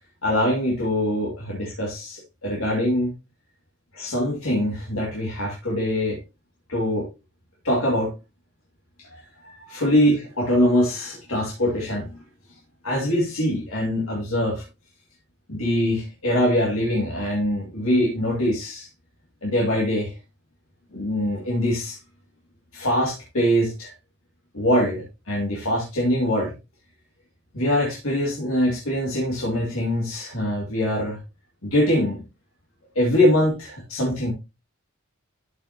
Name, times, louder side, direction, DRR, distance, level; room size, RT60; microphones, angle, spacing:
voice 1, 0.2-3.1 3.9-6.2 6.7-7.1 7.6-8.1 9.0-12.2 12.8-14.6 15.5-18.9 19.4-20.1 20.9-22.0 22.7-23.9 24.5-26.5 27.5-31.2 31.6-32.2 33.0-34.3, left 1 dB, 90° left, -2 dB, 2.2 m, -23 dB
12.5 x 5.4 x 2.9 m, 0.26 s
head